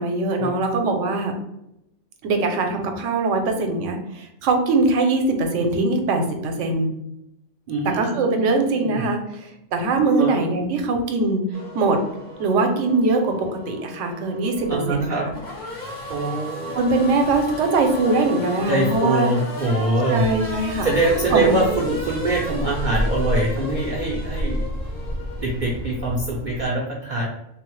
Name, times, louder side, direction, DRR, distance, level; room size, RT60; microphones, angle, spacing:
voice 1, 0.0-1.3 2.2-6.9 8.0-11.4 11.7-12.0 12.4-15.3 16.7-19.3 20.1-20.9 21.3-21.6, right 3 dB, 75° right, 4 dB, 0.9 m, -22 dB
voice 2, 7.7-9.1 10.2-10.4 14.7-15.3 16.1-16.8 18.7-20.3 20.8-24.6 25.4-27.3, right 2 dB, 55° right, -3 dB, 0.5 m, -23 dB
Race car auto racing / Accelerating revving vroom, 11.5-26.3, left 2 dB, 80° left, 1.8 m, -35 dB
Bird, 20.1-26.6, equal, 30° left, 0.7 m, -30 dB
3.7 x 2.0 x 3.0 m, 0.84 s
omnidirectional pair, 1.3 m